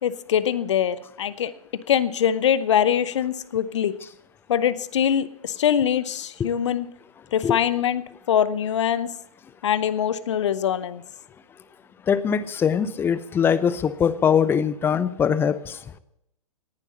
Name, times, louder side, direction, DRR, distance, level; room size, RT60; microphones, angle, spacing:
voice 1, 0.0-1.5 1.9-3.9 4.5-6.9 7.3-9.1 9.6-11.0, left 9 dB, 50° left, 16 dB, 0.9 m, -23 dB
voice 2, 12.1-15.8, left 7 dB, 10° left, 16 dB, 0.7 m, -22 dB
18.5 x 11.0 x 4.3 m, 0.78 s
figure-of-eight pair, 115°, 19 cm